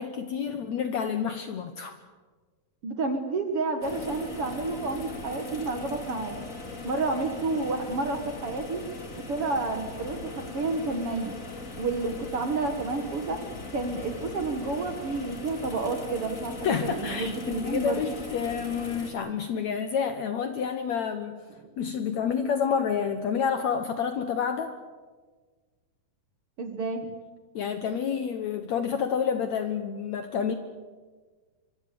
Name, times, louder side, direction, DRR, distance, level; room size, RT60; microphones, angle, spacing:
voice 1, 0.0-1.9 16.6-21.4 21.8-24.7 27.5-30.5, left 7 dB, 65° left, 8 dB, 1.9 m, -29 dB
voice 2, 2.8-6.4 6.8-8.8 9.3-11.4 11.8-13.4 13.7-18.0 26.6-27.1, right 3 dB, 50° right, 6 dB, 2.0 m, -30 dB
sound 1, 3.8-19.1, left 2 dB, 25° left, 2.5 m, -39 dB
25.0 x 23.5 x 7.0 m, 1.4 s
omnidirectional pair, 4.3 m